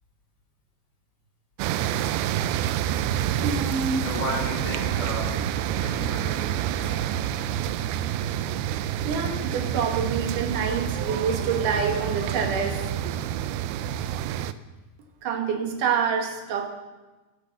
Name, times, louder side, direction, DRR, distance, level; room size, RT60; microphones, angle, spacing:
sound 1, 1.6-14.5, right 10 dB, 85° right, 2.5 m, -28 dB
voice 1, 3.4-4.1 9.0-12.9 15.2-16.7, right 6 dB, 65° right, 3 dB, 2.8 m, -27 dB
voice 2, 4.0-8.4, equal, 35° left, -5 dB, 4.2 m, -35 dB
11.0 x 10.0 x 7.1 m, 1.1 s
omnidirectional pair, 4.4 m